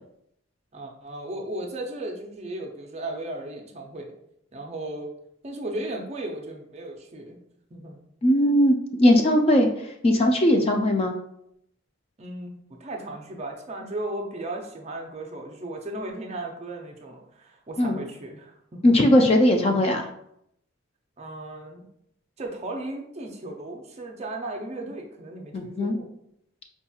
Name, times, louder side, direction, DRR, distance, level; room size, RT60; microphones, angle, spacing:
voice 1, 0.7-4.1 4.5-5.1 5.4-7.4 7.7-8.0 12.2-19.0 21.2-21.8 22.4-26.1, right 1 dB, 30° right, 2 dB, 0.5 m, -36 dB
voice 2, 8.2-11.1 17.8-18.0 18.8-20.1 25.5-26.0, left 1 dB, 30° left, 4 dB, 0.3 m, -19 dB
4.4 x 2.8 x 2.3 m, 0.75 s
head